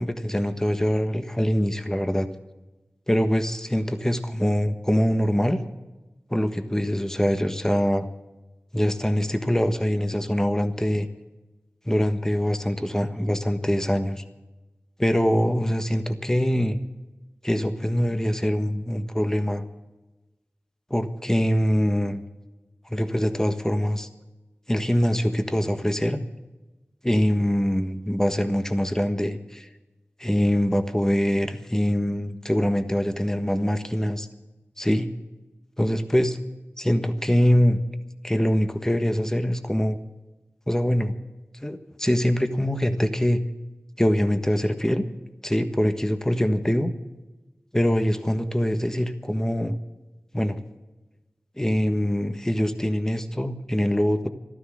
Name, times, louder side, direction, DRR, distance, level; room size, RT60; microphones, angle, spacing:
voice 1, 0.0-2.3 3.1-5.6 6.3-8.1 8.7-11.1 11.9-14.2 15.0-16.8 17.4-19.6 20.9-22.2 22.9-24.1 24.7-26.2 27.0-29.7 30.2-34.3 34.8-35.1 35.8-36.4 36.8-37.8 38.2-40.0 40.7-41.1 41.6-43.4 44.0-45.0 45.4-46.9 47.7-49.8 50.3-50.6 51.6-54.3, equal, 10° left, 8 dB, 1.4 m, -23 dB
15.5 x 12.5 x 6.3 m, 1.1 s
wide cardioid pair, 60°, 5 cm